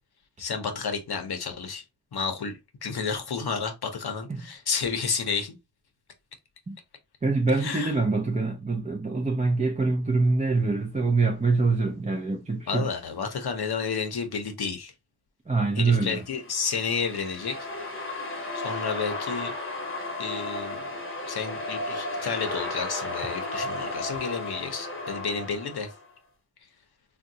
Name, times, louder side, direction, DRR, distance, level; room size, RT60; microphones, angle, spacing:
voice 1, 0.4-1.8 2.1-5.6 7.6-8.0 12.7-14.9 15.8-17.6 18.5-19.5 20.2-20.8 21.3-25.9, left 5 dB, 65° left, 0.7 m, -31 dB
voice 2, 7.2-12.9 15.5-16.2, right 3 dB, 20° right, 0.5 m, -25 dB
sound 1, 16.2-26.0, left 2 dB, 30° left, 0.9 m, -34 dB
3.6 x 2.2 x 2.6 m
wide cardioid pair, 105°, 40 cm